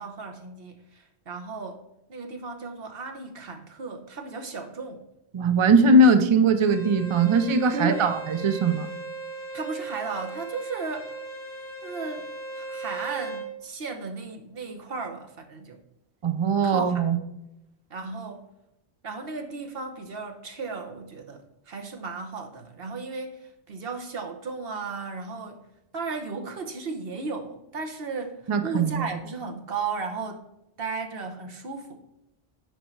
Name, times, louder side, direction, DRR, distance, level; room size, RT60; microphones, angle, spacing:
voice 1, 0.0-5.0 7.7-8.2 9.5-11.1 11.8-12.3 12.6-15.8 16.6-17.0 17.9-18.5 19.0-25.6 25.9-30.5 30.8-32.0, right 4 dB, 65° right, 4 dB, 1.2 m, -35 dB
voice 2, 5.3-8.1 8.4-8.9 16.2-17.2 28.5-29.1, right 2 dB, 40° right, 8 dB, 0.5 m, -20 dB
Bowed string instrument, 6.5-13.5, right 4 dB, 25° left, 2.6 m, -38 dB
6.6 x 4.6 x 4.5 m, 0.88 s
omnidirectional pair, 1.1 m